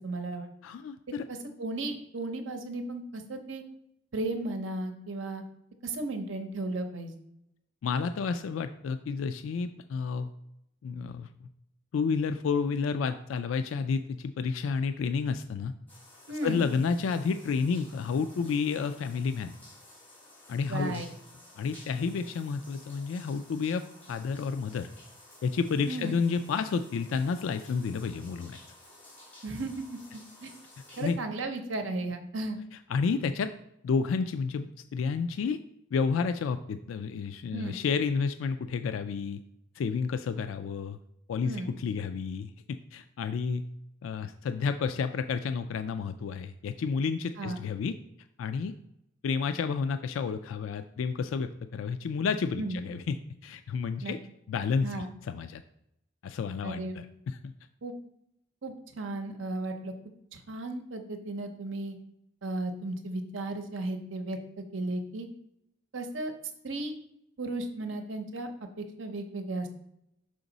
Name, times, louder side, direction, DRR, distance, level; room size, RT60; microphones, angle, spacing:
voice 1, 0.0-0.5 1.4-3.6 4.1-5.4 5.8-7.1 16.3-16.6 20.7-21.1 25.8-26.2 29.4-30.0 30.4-30.5 31.0-32.6 37.5-37.8 41.4-41.7 47.4-47.6 52.6-52.8 54.0-54.1 54.8-55.1 56.6-57.0 57.8-57.9 58.6-59.9 60.3-62.0 62.4-65.3 65.9-66.3 66.6-66.9 67.4-68.5 68.8-69.7, right 2 dB, 70° right, 6 dB, 0.8 m, -35 dB
voice 2, 0.6-1.3 7.8-10.3 10.8-11.3 11.9-15.7 16.4-19.5 20.5-21.0 21.6-23.8 24.1-24.9 25.4-28.6 31.0-31.2 32.9-33.5 33.8-35.6 35.9-39.4 39.8-41.0 41.3-43.6 44.0-47.9 48.4-48.7 49.2-53.2 53.4-54.2 54.5-55.6 56.2-57.5, left 5 dB, 80° left, 10 dB, 0.3 m, -30 dB
sound 1, 15.9-31.1, left 1 dB, 10° left, 2.6 m, -54 dB
6.0 x 5.0 x 4.0 m, 0.79 s
head